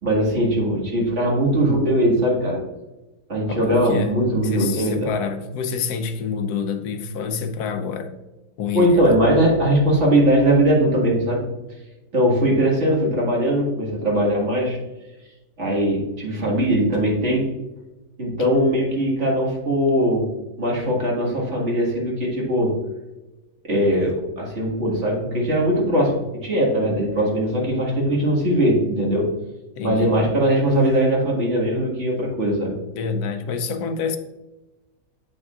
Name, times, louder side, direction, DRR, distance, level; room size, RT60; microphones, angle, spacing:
voice 1, 0.0-2.6 3.3-5.1 8.7-11.4 12.1-14.8 15.6-17.5 18.2-20.3 20.6-22.7 23.7-29.3 29.8-32.7, right 1 dB, 50° right, 2.1 m, -20 dB
voice 2, 3.5-4.1 4.4-8.1 8.6-9.2 29.8-30.3 32.9-34.2, left 6 dB, 85° left, 1.2 m, -27 dB
8.2 x 6.2 x 2.4 m
omnidirectional pair, 1.6 m